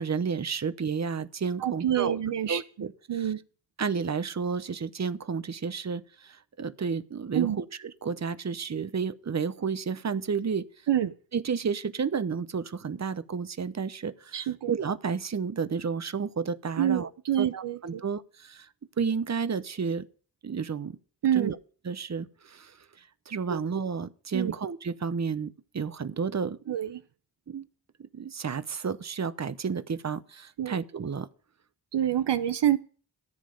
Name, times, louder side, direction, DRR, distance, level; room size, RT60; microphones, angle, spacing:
voice 1, 0.0-2.2 2.5-3.3 3.8-10.7 11.3-17.1 17.4-18.7 19.0-20.1 20.4-21.0 21.3-21.6 21.8-26.7 27.5-27.7 28.0-31.3, right 5 dB, 40° right, 0.8 m, -31 dB
voice 2, 1.6-2.6 3.1-3.4 7.3-7.6 10.9-11.1 14.3-14.7 16.8-18.0 21.2-21.5 23.5-23.6 24.3-24.5 26.7-27.0 30.6-30.8 31.9-32.8, right 10 dB, 75° right, 0.7 m, -27 dB
14.0 x 7.4 x 5.1 m
cardioid pair, 45°, 42 cm